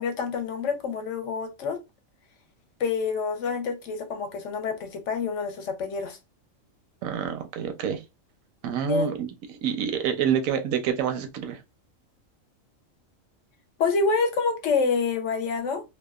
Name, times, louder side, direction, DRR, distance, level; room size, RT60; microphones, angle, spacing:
voice 1, 0.0-1.8 2.8-6.2 8.9-9.1 13.8-15.8, left 5 dB, 70° left, 0.9 m, -27 dB
voice 2, 7.0-8.0 8.6-9.3 9.6-11.6, right 8 dB, 80° right, 1.0 m, -27 dB
2.7 x 2.2 x 2.3 m
omnidirectional pair, 1.4 m